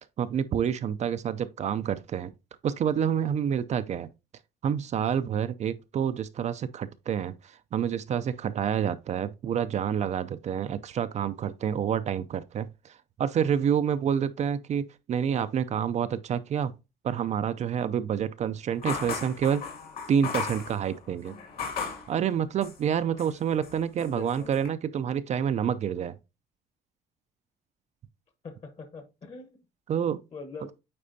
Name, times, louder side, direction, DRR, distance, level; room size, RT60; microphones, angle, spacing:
voice 1, 0.2-2.3 2.6-4.1 4.6-16.7 17.0-19.6 20.1-21.3 22.1-26.2 29.9-30.2, right 8 dB, 45° right, 0.4 m, -28 dB
sound 1, 18.8-22.1 22.6-23.4 23.6-24.7, left 6 dB, 65° left, 2.1 m, -36 dB
voice 2, 24.0-24.6 28.4-29.6 30.3-30.7, left 4 dB, 40° left, 1.2 m, -43 dB
8.6 x 4.2 x 2.7 m
cardioid pair, 110°, 17 cm